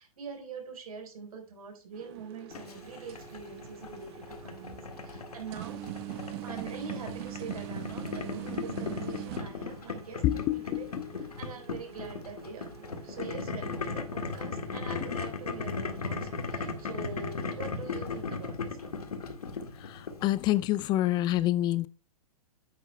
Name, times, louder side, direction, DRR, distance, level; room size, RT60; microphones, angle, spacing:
voice 1, 0.0-5.8 6.4-10.8 11.1-18.9, right 5 dB, 75° right, 4.3 m, -44 dB
sound 1, 1.9-18.2, right 13 dB, 45° right, 1.0 m, -45 dB
Boiling, 2.5-20.6, left 4 dB, 90° left, 1.8 m, -37 dB
voice 2, 10.2-11.1 19.8-21.9, left 14 dB, 25° left, 0.4 m, -27 dB
10.5 x 9.2 x 2.2 m
hypercardioid pair, 130°, 19 cm